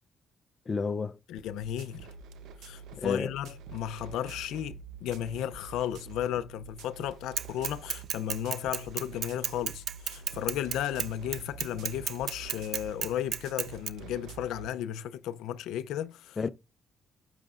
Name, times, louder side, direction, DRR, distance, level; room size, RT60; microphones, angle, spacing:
voice 1, 0.7-1.2 3.0-3.3 16.4-16.5, left 4 dB, 35° left, 0.6 m, -30 dB
voice 2, 1.3-2.1 2.6-16.4, left 11 dB, 90° left, 0.5 m, -34 dB
sound 1, 1.4-14.7, right 6 dB, 85° right, 0.8 m, -47 dB
Bicycle / Mechanisms, 7.4-13.9, right 8 dB, 65° right, 0.5 m, -32 dB
12.0 x 8.1 x 2.5 m
cardioid pair, 90°, 0 cm